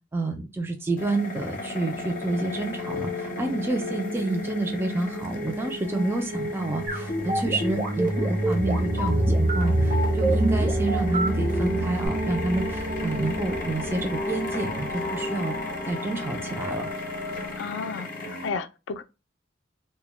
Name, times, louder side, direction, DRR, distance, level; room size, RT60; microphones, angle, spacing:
voice 1, 0.1-15.5 15.9-16.9, right 2 dB, 10° right, 0.3 m, -29 dB
sound 1, 1.0-18.5, left 1 dB, 50° left, 0.6 m, -37 dB
sound 2, 1.6-17.6, equal, 80° right, 0.9 m, -29 dB
sound 3, 6.9-12.1, right 2 dB, 45° right, 0.7 m, -28 dB
voice 2, 17.6-19.0, left 5 dB, 80° left, 0.3 m, -33 dB
2.2 x 2.1 x 3.0 m
head